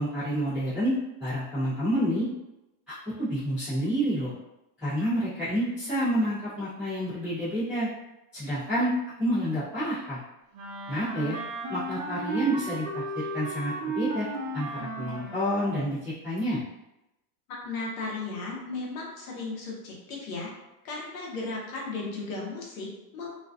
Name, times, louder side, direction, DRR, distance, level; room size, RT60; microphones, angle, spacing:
voice 1, 0.0-2.3 2.9-4.3 4.8-7.9 8.3-8.9 9.2-10.2 10.9-11.4 11.7-14.3 14.5-16.6, equal, ahead, -20 dB, 0.4 m, -29 dB
Wind instrument woodwind instrument, 10.5-15.8, right 2 dB, 90° right, 0.7 m, -34 dB
voice 2, 17.6-20.5 20.8-23.4, left 3 dB, 60° left, -2 dB, 0.8 m, -35 dB
2.4 x 2.2 x 2.3 m, 0.93 s
supercardioid pair, 175°, 49 cm